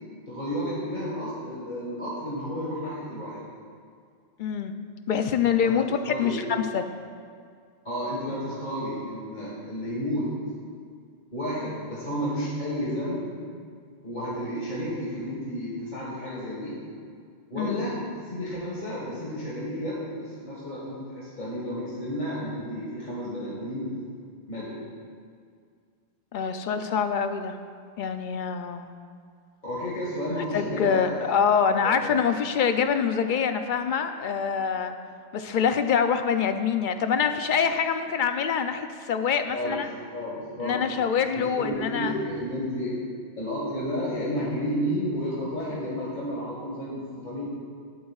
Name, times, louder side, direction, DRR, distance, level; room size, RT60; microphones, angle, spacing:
voice 1, 0.3-3.5 5.6-5.8 6.1-6.5 7.8-10.3 11.3-13.3 14.0-16.8 17.5-23.9 24.5-24.8 29.6-31.3 31.8-32.3 39.5-39.8 40.1-42.9 43.4-47.5, equal, 40° left, -7 dB, 1.9 m, -32 dB
voice 2, 4.4-4.7 5.1-6.8 17.6-17.9 26.3-27.6 28.0-28.9 30.5-34.9 35.3-39.9 40.6-42.1, left 7 dB, 60° left, 8 dB, 0.6 m, -25 dB
17.0 x 8.2 x 2.4 m, 2.1 s
omnidirectional pair, 1.2 m